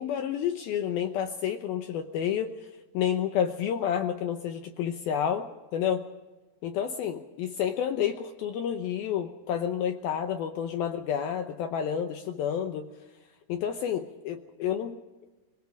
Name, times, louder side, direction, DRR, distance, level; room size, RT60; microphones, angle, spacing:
voice 1, 0.0-2.5 2.9-6.0 6.6-12.9 13.5-15.0, left 9 dB, 80° left, 7 dB, 2.2 m, -30 dB
24.5 x 21.5 x 5.1 m, 1.2 s
omnidirectional pair, 5.5 m